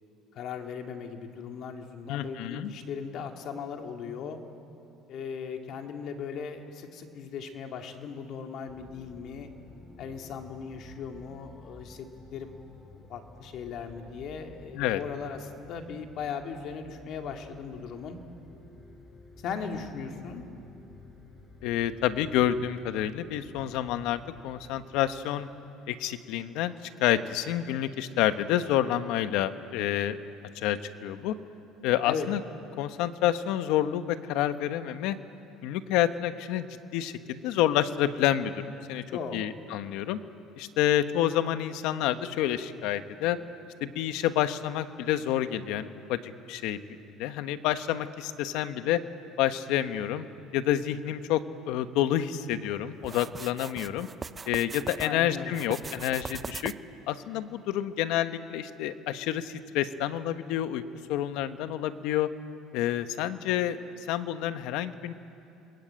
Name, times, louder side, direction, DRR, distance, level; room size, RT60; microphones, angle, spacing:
voice 1, 0.3-4.4 5.1-9.5 10.0-12.5 13.1-18.2 19.4-20.4 32.1-32.3 39.1-39.4 55.0-55.6, left 6 dB, 50° left, 4 dB, 2.4 m, -38 dB
voice 2, 2.1-2.7 14.7-15.0 21.6-25.5 25.9-30.2 30.5-31.3 31.8-32.4 32.8-35.2 35.6-36.7 36.9-39.0 39.3-40.2 40.6-43.4 43.8-46.2 46.5-46.8 47.2-49.0 49.4-50.3 50.5-54.1 54.5-56.7 57.1-60.8 61.1-62.3 62.7-63.8 64.1-65.1, left 12 dB, 75° left, 10 dB, 1.2 m, -28 dB
sound 1, 8.7-25.3, left 2 dB, 20° left, 3.6 m, -52 dB
sound 2, 53.0-55.1 55.5-57.0, right 4 dB, 20° right, 0.5 m, -40 dB
28.5 x 21.5 x 8.9 m, 2.9 s
cardioid pair, 140°, 0 cm